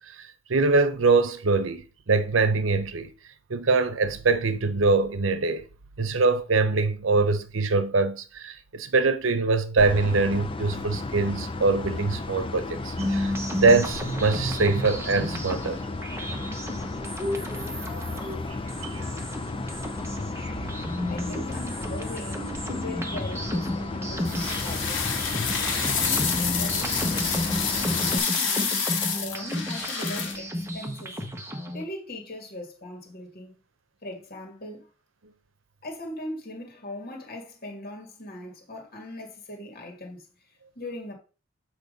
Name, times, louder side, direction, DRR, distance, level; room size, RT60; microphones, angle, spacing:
voice 1, 0.1-3.1 3.5-5.7 6.0-15.8 18.8-19.1 25.6-25.8, right 3 dB, 80° right, 0.8 m, -23 dB
sound 1, 9.8-28.2, left 2 dB, 25° left, 0.6 m, -34 dB
sound 2, 13.0-31.8, equal, 15° right, 1.1 m, -33 dB
voice 2, 21.1-25.2 25.7-28.7 29.1-31.2 31.7-33.6 34.0-34.9 35.8-40.3 40.8-41.1, left 1 dB, 50° left, 1.9 m, -39 dB
sound 3, 24.2-30.4, left 6 dB, 70° left, 1.7 m, -28 dB
8.1 x 3.2 x 5.2 m
head